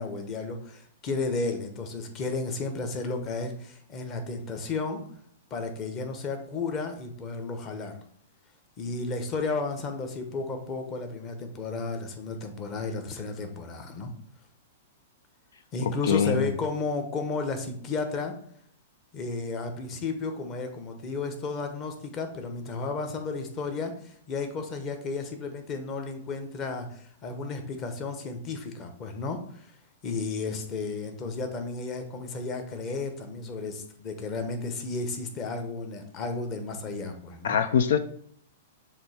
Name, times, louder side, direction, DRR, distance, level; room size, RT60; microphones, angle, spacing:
voice 1, 0.0-5.0 5.5-8.0 8.8-14.1 15.7-18.3 19.1-29.7 30.0-37.6, left 3 dB, 25° left, 5 dB, 1.0 m, -33 dB
voice 2, 15.8-16.5 37.4-38.0, left 7 dB, 75° left, 10 dB, 0.4 m, -24 dB
7.2 x 2.7 x 5.0 m, 0.62 s
hypercardioid pair, 150°, 0 cm